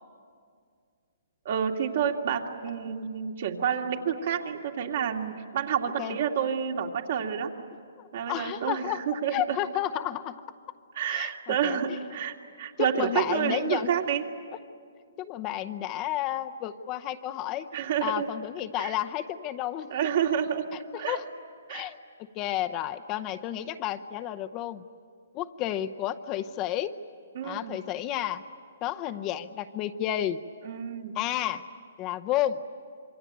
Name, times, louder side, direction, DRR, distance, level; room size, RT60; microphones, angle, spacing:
voice 1, 1.4-7.5 8.1-9.6 10.9-14.2 17.7-18.3 18.8-18.9 19.9-20.7 21.0-21.2 21.7-21.9 27.3-27.7 30.6-31.2, right 8 dB, 55° right, 2 dB, 2.5 m, -29 dB
voice 2, 8.0-9.0 9.3-10.3 11.1-12.0 12.8-13.9 15.2-17.7 18.0-19.9 20.7-21.3 21.7-22.0 22.3-24.9 25.3-26.9 27.4-28.4 28.8-30.4 31.2-31.6 32.0-32.6, left 12 dB, 30° left, 9 dB, 0.8 m, -31 dB
27.0 x 23.5 x 9.3 m, 2.2 s
hypercardioid pair, 145°, 0 cm